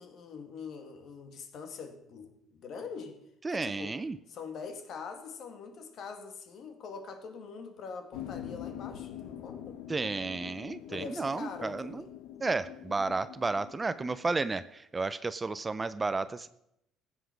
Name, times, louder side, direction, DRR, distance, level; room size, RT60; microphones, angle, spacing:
voice 1, 0.0-3.2 3.5-3.9 4.3-9.8 10.9-12.1, left 5 dB, 55° left, 6 dB, 1.9 m, -43 dB
voice 2, 3.4-4.2 9.9-12.1 12.4-16.5, right 3 dB, 20° right, 14 dB, 0.4 m, -32 dB
sound 1, 8.1-14.7, left 11 dB, 90° left, 1.1 m, -45 dB
15.0 x 8.0 x 6.1 m, 0.79 s
cardioid pair, 125°, 0 cm